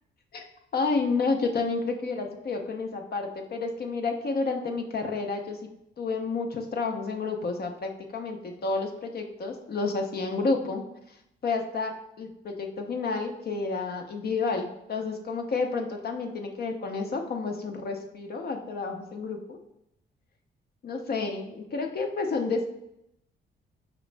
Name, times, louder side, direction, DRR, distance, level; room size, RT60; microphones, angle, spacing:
voice 1, 0.7-5.6 6.0-10.8 11.1-11.2 11.4-19.6 20.8-22.7, left 4 dB, 50° left, 3 dB, 0.7 m, -30 dB
5.0 x 3.0 x 3.3 m, 0.81 s
cardioid pair, 90°, 20 cm